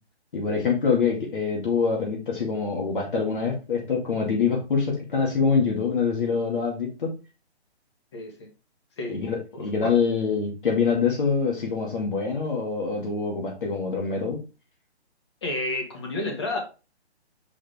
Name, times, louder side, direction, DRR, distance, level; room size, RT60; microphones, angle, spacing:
voice 1, 0.3-7.2 9.1-14.4, left 5 dB, 50° left, -1 dB, 2.3 m, -25 dB
voice 2, 8.1-8.5 9.0-9.2 9.5-9.9 15.4-16.6, left 2 dB, 25° left, 2 dB, 1.4 m, -31 dB
6.4 x 4.9 x 3.6 m, 0.31 s
hypercardioid pair, 175°, 34 cm